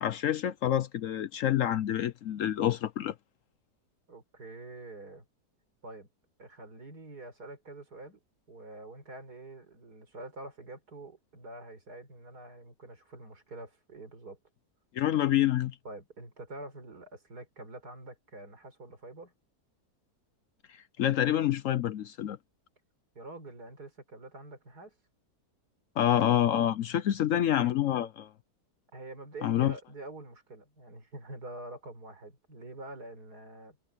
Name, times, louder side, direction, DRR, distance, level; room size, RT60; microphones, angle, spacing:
voice 1, 0.0-3.1 14.9-15.7 21.0-22.4 26.0-28.3 29.4-29.7, left 11 dB, 65° left, 0.9 m, -27 dB
voice 2, 4.1-5.3 5.8-6.1 6.4-8.2 8.5-14.4 15.8-19.3 23.1-24.9 27.6-27.8 28.9-33.8, right 2 dB, 75° right, 5.0 m, -46 dB
omnidirectional pair, 1.7 m